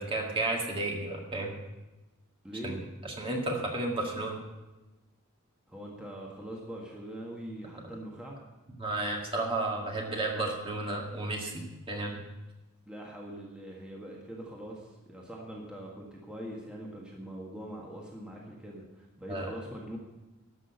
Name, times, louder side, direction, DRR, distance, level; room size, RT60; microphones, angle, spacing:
voice 1, 0.0-1.5 2.6-2.8 3.0-4.4 8.8-12.2 19.3-19.5, right 2 dB, 25° right, 0 dB, 1.9 m, -32 dB
voice 2, 2.4-2.8 5.7-8.4 12.8-20.0, right 1 dB, 5° right, -3 dB, 1.6 m, -42 dB
12.5 x 6.2 x 8.1 m, 1.1 s
head